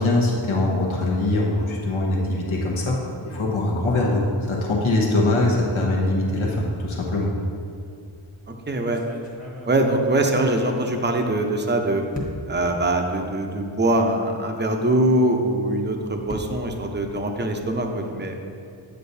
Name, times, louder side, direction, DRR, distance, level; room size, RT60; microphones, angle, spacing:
voice 1, 0.0-3.0 3.3-7.3, left 2 dB, 75° left, -3 dB, 1.0 m, -22 dB
sound 1, 8.1-8.4 8.9-11.7 12.1-12.7 13.4-13.5 13.8-13.9 15.6-17.9, left 1 dB, 15° left, 1.1 m, -39 dB
voice 2, 8.7-9.0 9.6-12.0 12.5-18.3, right 1 dB, 20° right, 3 dB, 0.6 m, -22 dB
7.8 x 6.6 x 2.7 m, 2.4 s
wide cardioid pair, 55°, 49 cm